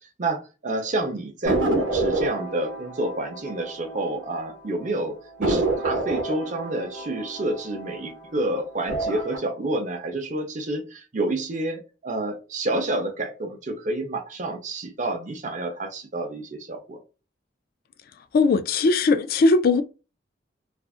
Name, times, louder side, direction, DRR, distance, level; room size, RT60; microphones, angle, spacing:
voice 1, 0.2-17.0, right 2 dB, 45° right, 0.6 m, -29 dB
sound 1, 1.4-4.5 4.8-4.9 5.4-8.3 8.8-9.4, right 2 dB, 75° right, 0.8 m, -28 dB
voice 2, 18.3-19.8, left 3 dB, 55° left, 0.3 m, -19 dB
2.5 x 2.4 x 2.4 m
head